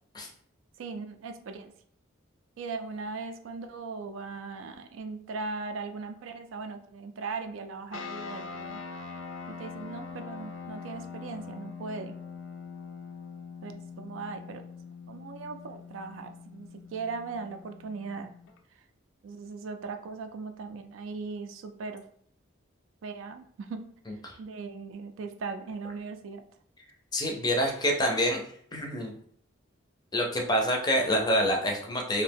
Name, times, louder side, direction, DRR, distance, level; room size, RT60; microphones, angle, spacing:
voice 1, 0.8-1.7 2.6-8.8 9.5-12.1 13.6-14.6 15.1-18.3 19.2-22.0 23.0-23.9 24.4-26.4, right 4 dB, 75° right, 7 dB, 0.3 m, -39 dB
sound 1, 7.9-18.6, left 5 dB, 75° left, 0.4 m, -43 dB
voice 2, 27.1-28.4 28.7-29.1 30.1-32.2, equal, 20° left, 1 dB, 0.4 m, -26 dB
2.7 x 2.1 x 3.4 m, 0.63 s
head